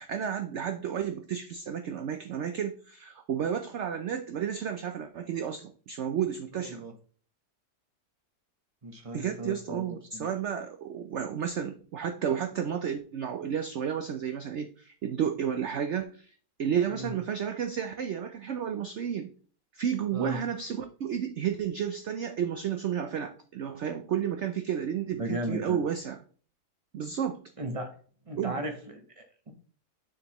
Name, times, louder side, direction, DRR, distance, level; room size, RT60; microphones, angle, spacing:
voice 1, 0.0-6.8 9.1-16.3 16.6-19.3 19.7-26.2 26.9-27.4 28.4-28.6, right 8 dB, 70° right, 7 dB, 0.6 m, -32 dB
voice 2, 6.5-6.9 8.8-9.8 10.1-10.3 16.9-17.1 20.1-20.4 25.2-25.8 27.6-27.9 28.3-29.5, right 1 dB, 25° right, 4 dB, 0.8 m, -36 dB
7.1 x 6.3 x 3.0 m, 0.44 s
omnidirectional pair, 1.8 m